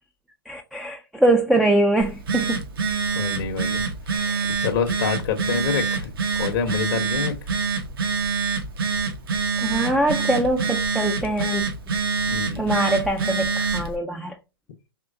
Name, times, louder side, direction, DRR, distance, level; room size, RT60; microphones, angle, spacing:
voice 1, 0.5-2.6 4.1-4.5 9.6-11.6 12.6-14.4, right 1 dB, ahead, 0.4 m, -23 dB
Telephone, 2.0-13.9, right 5 dB, 70° right, 1.1 m, -26 dB
voice 2, 3.1-3.8 4.6-6.1 6.4-7.3 12.3-12.7, left 6 dB, 60° left, 0.8 m, -27 dB
4.4 x 3.1 x 2.6 m
hypercardioid pair, 125°, 12 cm